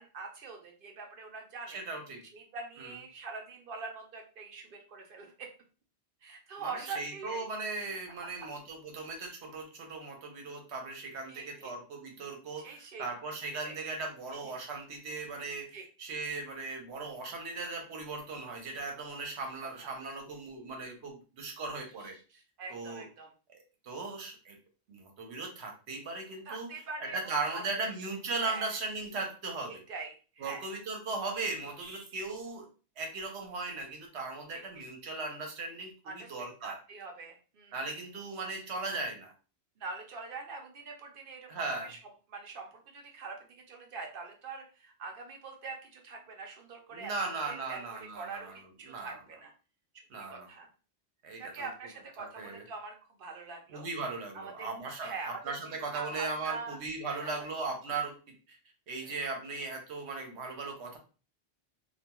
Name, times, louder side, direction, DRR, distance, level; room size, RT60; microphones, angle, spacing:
voice 1, 0.0-1.8 2.3-5.5 6.2-7.5 11.3-11.7 12.6-13.1 13.6-13.8 14.4-14.5 15.7-15.9 19.8-20.0 22.0-23.3 26.4-27.2 27.5-27.9 28.4-28.8 29.7-30.7 34.5-34.6 36.0-37.8 39.8-42.0 42.3-49.5 50.3-50.7 51.4-53.9 54.3-54.7 55.0-55.4 55.9-56.8 57.1-57.5 58.9-59.2, right 4 dB, 60° right, 2 dB, 0.8 m, -44 dB
voice 2, 1.7-2.2 2.8-2.9 6.6-22.2 22.7-23.0 23.5-24.6 24.9-26.7 27.0-29.8 30.4-32.6 33.0-36.7 37.7-39.3 41.5-41.9 46.9-48.6 48.9-49.2 50.1-50.5 51.2-51.7 52.2-52.6 53.7-58.2 58.5-58.6 58.9-61.0, right 3 dB, 75° right, 3 dB, 1.0 m, -38 dB
2.4 x 2.2 x 2.9 m, 0.36 s
omnidirectional pair, 1.2 m